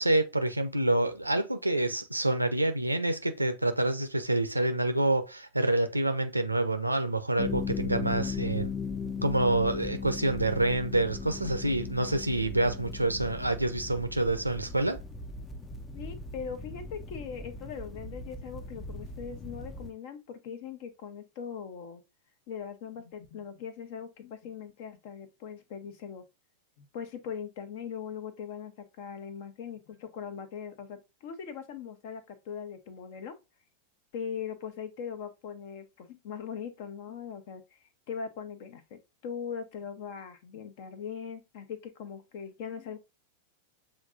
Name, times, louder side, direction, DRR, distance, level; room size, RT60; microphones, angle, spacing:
voice 1, 0.0-8.7 9.2-15.0, right 1 dB, 85° right, 0.6 m, -27 dB
sound 1, 7.4-19.9, left 4 dB, 15° left, 0.5 m, -38 dB
voice 2, 15.9-22.0 22.5-26.3 26.8-33.4 34.1-37.8 38.1-43.0, left 7 dB, 50° left, 0.9 m, -40 dB
7.0 x 2.6 x 2.5 m
figure-of-eight pair, 90°, 0 cm